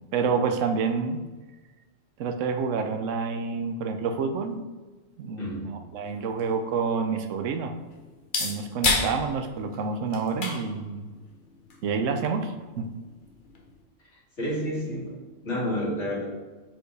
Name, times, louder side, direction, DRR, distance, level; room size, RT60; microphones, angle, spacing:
voice 1, 0.1-1.2 2.2-4.6 5.2-7.7 8.4-11.1 11.8-12.9, right 5 dB, 80° right, 7 dB, 1.0 m, -28 dB
voice 2, 5.4-5.7 14.4-15.1 15.4-16.2, equal, 65° left, -7 dB, 2.7 m, -29 dB
sound 1, 5.8-13.8, left 3 dB, 45° left, 1.0 m, -34 dB
7.4 x 4.5 x 3.3 m, 1.3 s
omnidirectional pair, 1.3 m